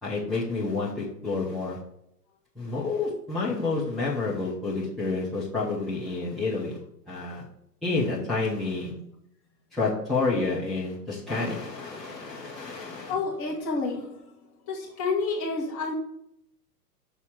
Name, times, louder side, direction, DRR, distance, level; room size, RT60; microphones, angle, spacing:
voice 1, 0.0-1.8 2.5-6.8 7.1-7.4 7.8-8.9 9.7-13.1, left 3 dB, ahead, -8 dB, 0.4 m, -29 dB
voice 2, 13.1-14.2 14.7-15.9, left 4 dB, 30° left, -3 dB, 2.3 m, -29 dB
6.6 x 4.1 x 6.0 m, 0.76 s
figure-of-eight pair, 110°, 49 cm